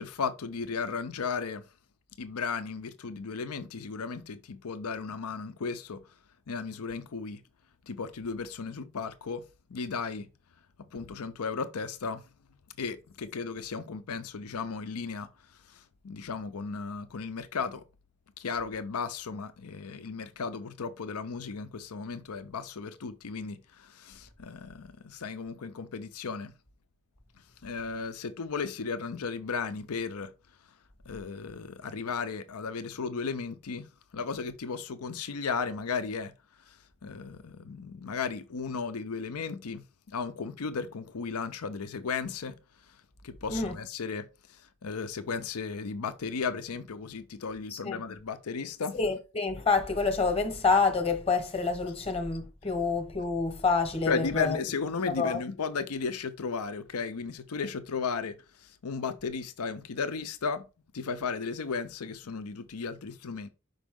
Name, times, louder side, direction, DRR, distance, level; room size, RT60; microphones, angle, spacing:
voice 1, 0.0-1.6 2.2-6.0 6.5-7.4 7.9-9.4 9.7-10.3 10.9-12.2 12.8-15.3 15.7-17.8 18.4-26.5 27.6-30.3 31.1-36.3 36.7-42.6 43.2-49.0 54.1-60.6 60.9-63.5, left 5 dB, 85° left, 0.6 m, -35 dB
voice 2, 47.7-48.0 48.9-54.6 55.2-55.4, left 4 dB, 25° left, 1.0 m, -27 dB
5.5 x 5.1 x 3.6 m
head